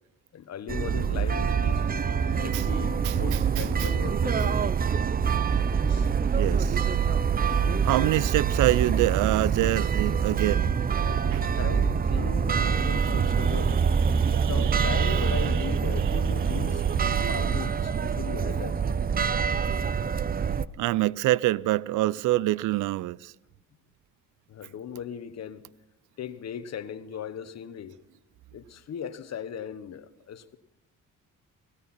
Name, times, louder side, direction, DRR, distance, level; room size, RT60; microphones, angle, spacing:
voice 1, 0.3-2.1 2.3-4.7 5.9-6.1 7.1-7.3 11.4-13.8 14.3-16.9 17.3-19.0 24.5-25.6 26.2-28.0 28.5-30.6, left 8 dB, 60° left, 1.3 m, -38 dB
sound 1, 0.7-20.7, right 6 dB, 30° right, 0.6 m, -25 dB
voice 2, 6.3-6.8 7.8-10.8 11.3-11.5 14.1-15.3 20.8-23.3, right 16 dB, 85° right, 0.5 m, -26 dB
18.5 x 17.5 x 4.3 m
cardioid pair, 90°, 30 cm